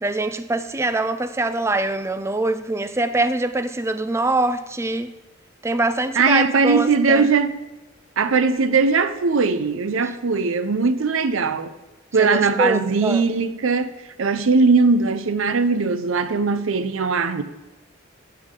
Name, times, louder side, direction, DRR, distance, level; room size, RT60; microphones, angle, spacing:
voice 1, 0.0-5.1 5.6-7.3 12.2-13.2, right 2 dB, 15° right, 0.4 m, -24 dB
voice 2, 6.1-7.5 8.2-11.7 12.1-13.9 14.2-17.4, right 4 dB, 75° right, 0.6 m, -19 dB
15.0 x 5.8 x 3.7 m
head